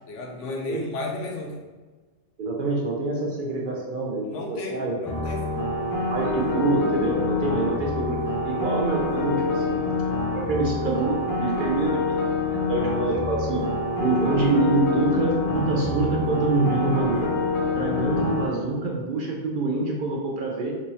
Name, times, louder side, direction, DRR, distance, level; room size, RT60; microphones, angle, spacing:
voice 1, 0.1-1.6 4.2-5.5, left 2 dB, 90° left, 0 dB, 1.0 m, -33 dB
voice 2, 2.4-4.9 6.1-8.2 8.4-12.2 12.7-13.6 14.0-17.3 17.8-20.7, right 2 dB, 60° right, -2 dB, 0.6 m, -26 dB
sound 1, 5.0-18.5, left 2 dB, 25° left, 0.5 m, -26 dB
3.5 x 3.0 x 2.7 m, 1.3 s
omnidirectional pair, 1.2 m